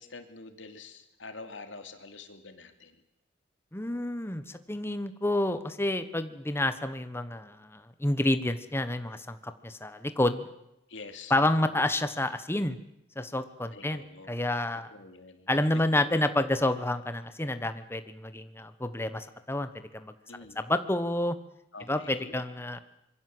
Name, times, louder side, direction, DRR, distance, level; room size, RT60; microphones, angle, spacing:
voice 1, 0.0-3.0 10.9-11.5 13.7-14.3 14.9-15.5 20.3-20.6 21.7-22.4, left 3 dB, 70° left, 7 dB, 2.8 m, -46 dB
voice 2, 3.7-10.5 11.3-12.8 13.2-14.9 15.5-20.1 20.6-21.4 21.9-22.8, left 1 dB, 15° left, 10 dB, 1.2 m, -29 dB
25.5 x 23.0 x 7.9 m, 0.84 s
head